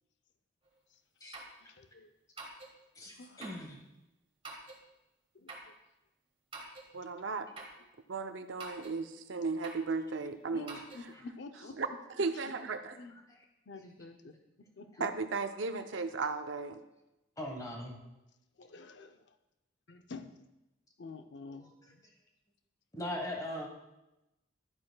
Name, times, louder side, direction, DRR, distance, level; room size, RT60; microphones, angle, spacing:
sound 1, 0.6-0.7 1.3-1.6 2.4-2.7 3.4-3.7 4.4-4.8 5.5-5.7 6.5-6.9 7.6-7.8 8.6-9.0 9.6-9.9 10.7-11.0, right 3 dB, 30° right, 1.3 m, -46 dB
voice 1, 1.6-2.1 3.1-3.6 5.3-5.7 6.9-7.1 7.6-7.7 10.5-12.0 12.3-12.5 13.0-13.2 13.7-14.4 14.8-15.1 18.6-19.4 19.9-20.4 21.0-22.0, left 3 dB, 60° left, 8 dB, 0.6 m, -49 dB
voice 2, 3.0-3.8 17.4-18.0 22.9-23.7, left 1 dB, 20° left, 2 dB, 1.2 m, -39 dB
voice 3, 6.9-7.5 8.1-10.8 11.8-11.9 12.2-12.9 15.0-16.8, right 4 dB, 70° right, 8 dB, 0.6 m, -35 dB
11.5 x 8.7 x 2.2 m, 0.96 s
head